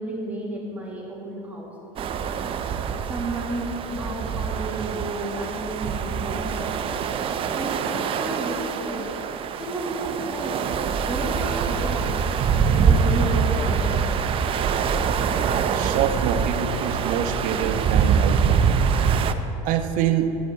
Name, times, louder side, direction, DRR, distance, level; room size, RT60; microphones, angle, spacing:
voice 1, 0.0-1.7 2.9-7.0 7.5-9.1 9.6-14.1, right 1 dB, 10° right, -4 dB, 1.8 m, -32 dB
sound 1, 2.0-19.3, right 6 dB, 35° right, 0.5 m, -24 dB
voice 2, 15.7-18.8 19.6-20.3, right 9 dB, 55° right, 6 dB, 0.9 m, -25 dB
11.5 x 9.4 x 4.8 m, 2.9 s
supercardioid pair, 125°, 17 cm